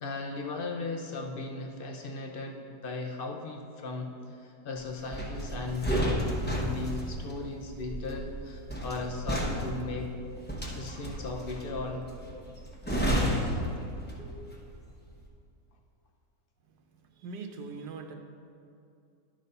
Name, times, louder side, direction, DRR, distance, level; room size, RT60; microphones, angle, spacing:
voice 1, 0.0-10.1 10.8-12.1, left 3 dB, 70° left, 2 dB, 0.5 m, -37 dB
sound 1, 5.1-14.5 14.8-15.0, equal, 10° left, 0.6 m, -32 dB
sound 2, 9.2-9.4 10.2-10.4 11.2-11.4 12.2-12.4 13.2-13.4 14.2-14.5, left 1 dB, 35° right, 1.4 m, -49 dB
voice 2, 17.1-18.1, right 4 dB, 90° right, 4 dB, 1.2 m, -41 dB
11.0 x 4.1 x 5.3 m, 2.5 s
omnidirectional pair, 1.7 m